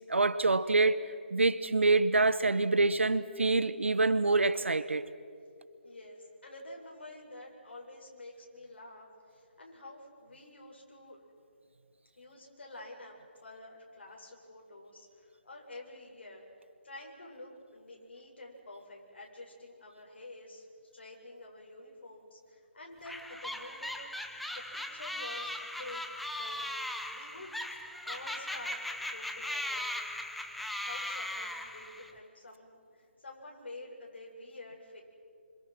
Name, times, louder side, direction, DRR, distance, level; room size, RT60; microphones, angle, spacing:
voice 1, 0.1-1.0 1.3-5.0, right 3 dB, 90° right, 1.3 m, -26 dB
voice 2, 5.8-11.2 12.1-13.2 13.4-20.7 20.9-24.0 24.3-26.8 27.1-29.9 30.7-35.0, left 2 dB, 65° left, 7.6 m, -49 dB
sound 1, 23.0-32.1, left 1 dB, ahead, 0.8 m, -38 dB
29.0 x 26.5 x 6.2 m
figure-of-eight pair, 160°, 6 cm